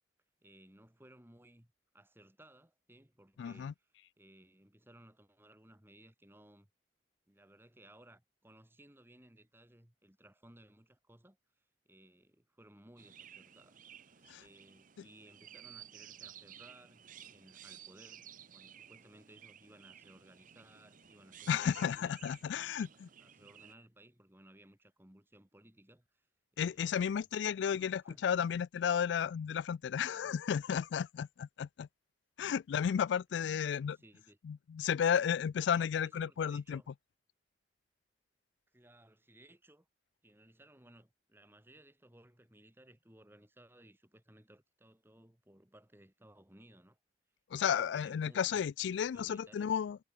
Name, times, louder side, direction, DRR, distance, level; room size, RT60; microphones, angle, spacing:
voice 1, 0.4-6.7 7.3-22.2 22.4-22.9 23.2-26.3 26.5-27.3 27.6-28.3 33.3-34.4 35.7-36.9 38.7-39.9 40.2-47.0 47.5-48.6 49.0-49.7, right 1 dB, 10° right, 2.3 m, -61 dB
voice 2, 3.4-3.7 14.3-14.4 21.5-23.1 26.6-31.9 32.4-34.0 34.4-36.8 47.5-50.0, left 8 dB, 70° left, 0.3 m, -33 dB
Chirp tweet, 13.0-23.7, right 9 dB, 45° right, 0.9 m, -55 dB
head